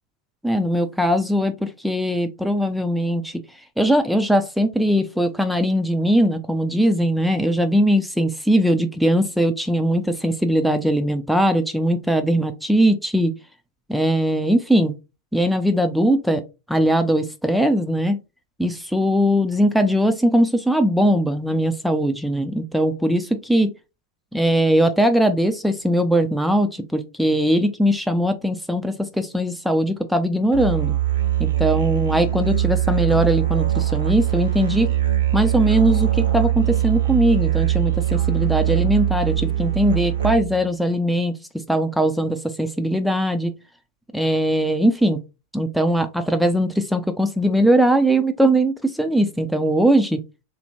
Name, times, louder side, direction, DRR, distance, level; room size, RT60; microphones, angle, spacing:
voice 1, 0.4-3.4 3.8-13.3 13.9-14.9 15.3-16.4 16.7-18.2 18.6-23.7 24.3-30.9 31.4-34.9 35.3-41.3 41.7-43.5 44.1-45.2 45.5-50.2, equal, ahead, 8 dB, 0.3 m, -20 dB
Musical instrument, 30.5-40.7, right 12 dB, 65° right, 0.6 m, -22 dB
3.2 x 2.1 x 2.7 m, 0.27 s
figure-of-eight pair, 90°, 0 cm